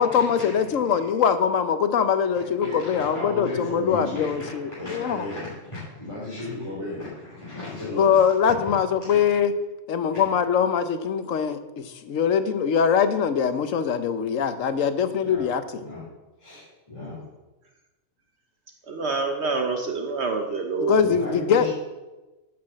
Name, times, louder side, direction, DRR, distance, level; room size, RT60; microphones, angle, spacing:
voice 1, 0.0-5.3 8.0-9.5 9.9-15.8 20.8-21.7, left 7 dB, 85° left, 11 dB, 1.2 m, -22 dB
voice 2, 2.6-8.2 15.2-15.4 15.8-16.0 16.4-17.2 21.0-21.7, left 2 dB, 25° left, -9 dB, 3.5 m, -34 dB
voice 3, 18.9-21.0, right 4 dB, 60° right, 4 dB, 1.2 m, -27 dB
11.0 x 6.1 x 7.3 m, 1.1 s
omnidirectional pair, 1.3 m